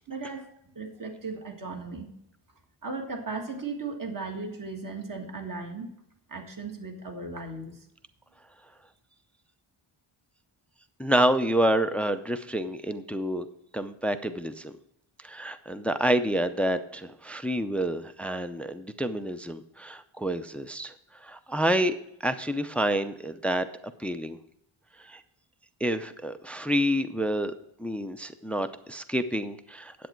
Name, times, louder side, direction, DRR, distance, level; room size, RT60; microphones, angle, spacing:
voice 1, 0.1-0.4 0.8-2.1 2.8-5.9 6.3-7.9, right 3 dB, 40° right, 3 dB, 1.8 m, -36 dB
voice 2, 11.0-13.5 13.7-14.7 15.2-20.9 21.2-22.0 22.2-23.7 24.0-24.4 25.0-25.2 25.8-27.5 27.8-29.9, right 1 dB, 5° left, 10 dB, 0.5 m, -28 dB
10.5 x 8.3 x 4.5 m, 0.78 s
wide cardioid pair, 125°, 49 cm